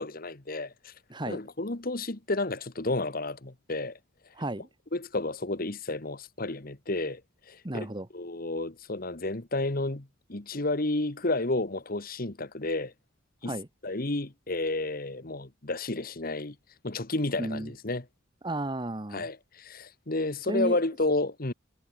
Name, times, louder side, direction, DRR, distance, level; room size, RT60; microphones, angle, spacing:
voice 1, 0.0-0.9 1.3-4.0 4.9-7.2 7.5-7.9 8.1-12.9 13.4-13.5 13.8-16.5 16.8-18.0 19.1-21.5, left 2 dB, 45° left, 1.5 m, -31 dB
voice 2, 1.1-1.4 4.3-4.7 7.6-8.1 13.4-13.7 17.4-17.7 18.4-19.3 20.5-20.8, right 1 dB, 25° right, 1.3 m, -33 dB
head